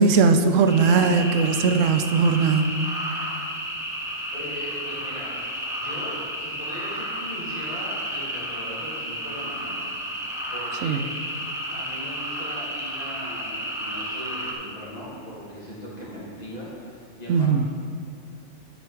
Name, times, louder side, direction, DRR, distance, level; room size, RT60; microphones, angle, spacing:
voice 1, 0.0-2.7 10.8-11.0 17.3-17.7, right 4 dB, 75° right, 8 dB, 0.9 m, -19 dB
sound 1, 0.7-14.5, equal, 5° right, 0.8 m, -32 dB
voice 2, 4.3-5.3 5.8-9.8 10.5-11.4 11.7-17.7, equal, 30° left, -7 dB, 2.2 m, -39 dB
10.5 x 4.8 x 4.6 m, 2.3 s
omnidirectional pair, 1.4 m